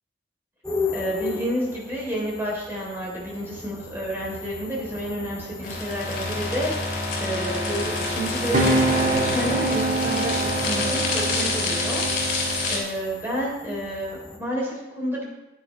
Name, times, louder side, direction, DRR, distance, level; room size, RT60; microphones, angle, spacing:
sound 1, 0.6-14.4, left 4 dB, 5° left, 1.1 m, -37 dB
voice 1, 0.9-15.2, right 1 dB, 15° right, -4 dB, 3.5 m, -30 dB
sound 2, 5.6-12.8, left 2 dB, 50° left, 3.6 m, -27 dB
sound 3, 7.3-12.7, right 2 dB, 40° right, 1.6 m, -26 dB
14.5 x 10.0 x 3.3 m, 0.97 s
head